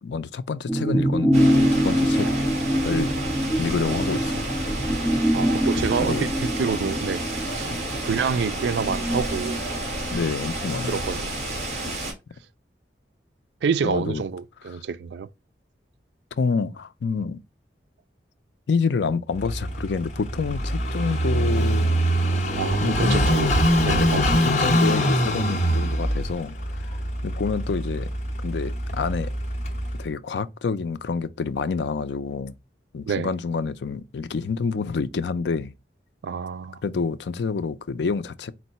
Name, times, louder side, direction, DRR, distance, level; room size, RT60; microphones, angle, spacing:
voice 1, 0.0-2.3 2.8-3.1 3.6-4.5 6.0-6.3 7.7-7.8 10.1-11.1 13.8-14.2 16.4-17.4 18.7-22.4 22.8-23.4 23.9-27.0 27.2-28.1 28.4-29.3 30.0-32.5 32.9-35.7 36.8-38.5, left 5 dB, 75° left, 0.4 m, -28 dB
sound 1, 0.7-10.5 10.8-10.9, equal, 5° left, 0.9 m, -24 dB
sound 2, 1.3-12.1, right 1 dB, 35° right, 1.5 m, -30 dB
voice 2, 5.3-6.3 6.6-7.2 7.5-7.7 8.0-9.6 10.9-11.3 11.8-12.0 13.6-15.3 22.6-23.5 23.8-24.6 33.0-33.3 36.2-36.8, right 6 dB, 75° right, 0.3 m, -27 dB
Car passing by / Idling, 19.4-30.0, equal, 40° left, 0.9 m, -23 dB
4.5 x 2.1 x 4.0 m
head